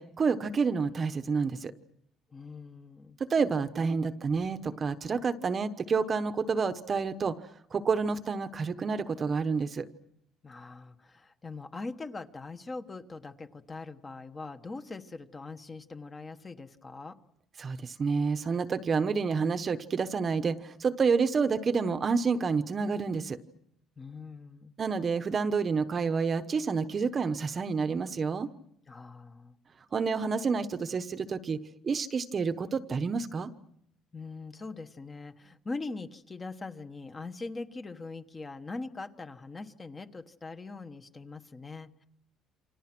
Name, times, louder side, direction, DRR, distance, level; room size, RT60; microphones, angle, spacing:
voice 1, 0.0-1.7 3.2-7.4 7.7-9.9 17.6-23.4 24.8-28.5 29.9-31.6 31.8-33.5, right 5 dB, 30° right, 11 dB, 1.1 m, -29 dB
voice 2, 2.3-3.2 10.4-17.2 24.0-24.7 28.9-29.6 34.1-42.0, left 3 dB, 20° left, 9 dB, 1.2 m, -42 dB
29.0 x 26.5 x 6.1 m, 0.74 s
cardioid pair, 160°, 0 cm